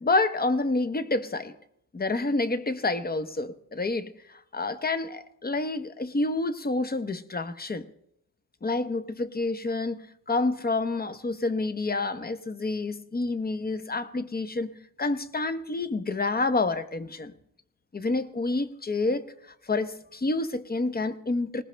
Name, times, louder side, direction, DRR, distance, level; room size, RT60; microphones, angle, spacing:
voice 1, 0.0-1.5 1.9-7.8 8.6-10.0 10.3-14.7 15.0-17.3 17.9-19.3 19.6-21.6, left 3 dB, 25° left, 12 dB, 0.8 m, -28 dB
20.5 x 19.0 x 3.3 m, 0.75 s
cardioid pair, 100°, 36 cm